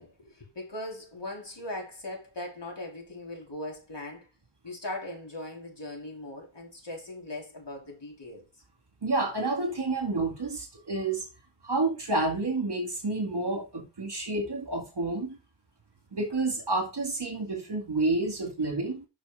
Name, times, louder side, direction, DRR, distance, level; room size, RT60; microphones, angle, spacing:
voice 1, 0.0-4.3 4.6-8.5, left 1 dB, 60° left, 3.6 m, -39 dB
voice 2, 9.0-11.3 11.6-15.4 16.1-19.1, right 2 dB, 55° right, 2.1 m, -29 dB
7.9 x 6.2 x 3.8 m
wide cardioid pair, 65°, 47 cm